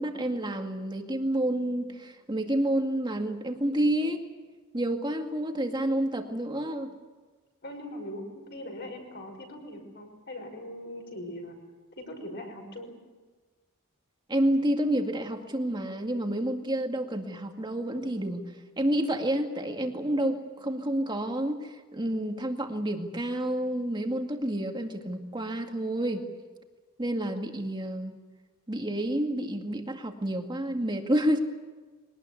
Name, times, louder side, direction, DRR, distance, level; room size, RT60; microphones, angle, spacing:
voice 1, 0.0-4.2 4.7-6.9 14.3-18.4 18.8-26.2 27.0-28.2 28.7-31.4, right 1 dB, 20° right, 4 dB, 2.1 m, -29 dB
voice 2, 7.6-11.6 12.0-12.9, left 1 dB, 50° left, 3 dB, 6.0 m, -40 dB
23.0 x 19.0 x 9.6 m, 1.3 s
head